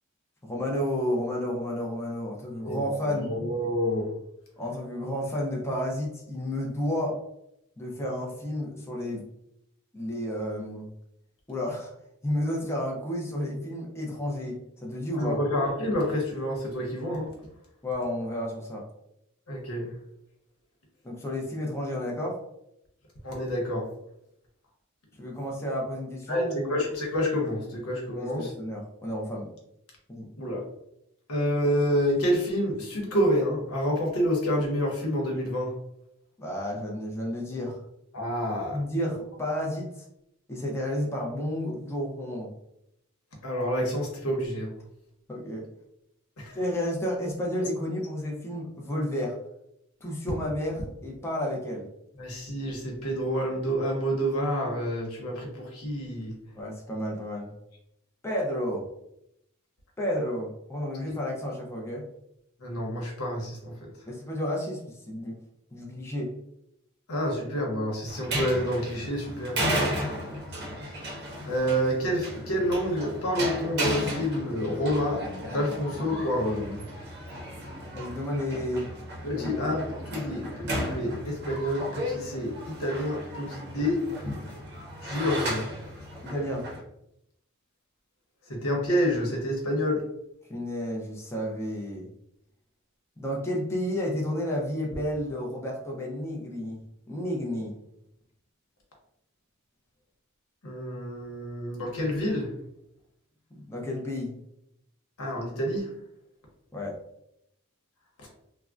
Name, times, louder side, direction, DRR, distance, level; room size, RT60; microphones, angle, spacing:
voice 1, 0.4-3.3 4.6-7.2 7.8-9.2 9.9-10.9 11.5-11.9 12.2-15.4 17.8-18.8 21.0-22.4 25.2-26.7 28.1-29.5 30.1-30.3 36.4-37.8 38.7-40.0 40.5-42.5 45.3-45.7 46.5-49.4 50.0-51.9 56.5-57.5 58.2-58.9 60.0-62.1 64.1-65.4 65.7-66.3 70.1-70.4 70.7-70.8 77.9-78.9 79.3-79.7 86.2-86.7 90.5-92.1 93.2-96.8 97.1-97.8 103.5-104.4 106.7-107.0, left 1 dB, 10° left, -2 dB, 0.5 m, -31 dB
voice 2, 2.6-4.1 15.2-17.3 19.5-19.9 23.2-23.9 26.3-28.5 30.4-30.6 31.3-35.7 38.1-38.8 43.4-44.7 46.4-46.6 52.1-56.3 61.0-61.1 62.6-63.9 67.1-69.7 71.5-76.8 79.2-84.0 85.0-85.7 88.5-90.0 100.6-102.5 105.2-105.9 108.2-108.3, equal, 90° left, -1 dB, 0.9 m, -28 dB
sound 1, 68.1-86.8, equal, 50° right, 0.7 m, -34 dB
3.5 x 2.1 x 2.4 m, 0.79 s
head